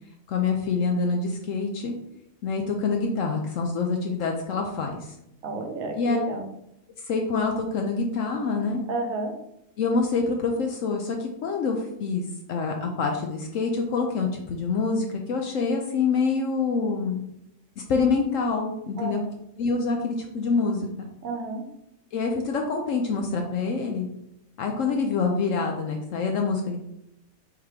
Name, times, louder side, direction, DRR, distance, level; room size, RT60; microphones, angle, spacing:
voice 1, 0.3-1.9 2.4-5.1 6.0-6.2 7.1-8.8 9.8-17.2 17.9-19.2 19.6-21.1 22.1-24.1 24.6-26.8, left 4 dB, 70° left, 2 dB, 0.9 m, -26 dB
voice 2, 5.4-6.5 8.9-9.3 19.0-19.3 21.2-21.6, right 3 dB, 80° right, 3 dB, 1.1 m, -31 dB
3.6 x 2.9 x 4.8 m, 0.80 s
omnidirectional pair, 1.4 m